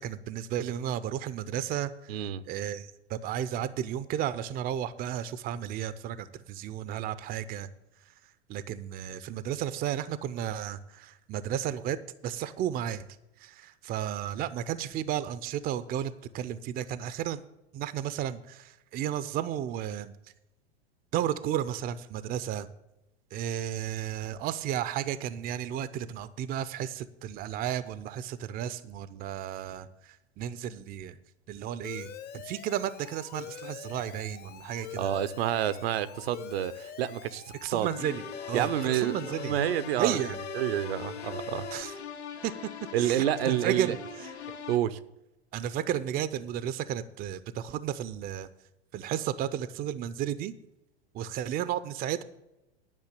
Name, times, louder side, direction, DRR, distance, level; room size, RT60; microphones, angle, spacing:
voice 1, 0.0-2.2 2.4-7.7 8.5-12.0 12.2-13.1 13.4-17.4 17.7-20.1 21.1-22.7 23.3-31.2 31.5-35.1 37.6-39.6 40.0-40.4 41.7-41.9 42.4-42.7 43.0-44.0 45.5-48.5 48.9-50.5 51.1-52.2, right 10 dB, 30° right, 0.6 m, -33 dB
voice 2, 2.1-2.4 35.0-37.9 38.5-40.2 40.5-41.7 42.9-44.0 44.7-45.0, right 11 dB, 65° right, 0.7 m, -29 dB
Alarm, 31.8-41.8, left 9 dB, 30° left, 0.9 m, -43 dB
sound 1, 38.0-44.8, left 5 dB, 85° left, 1.1 m, -41 dB
10.5 x 5.7 x 8.3 m
hypercardioid pair, 95°, 33 cm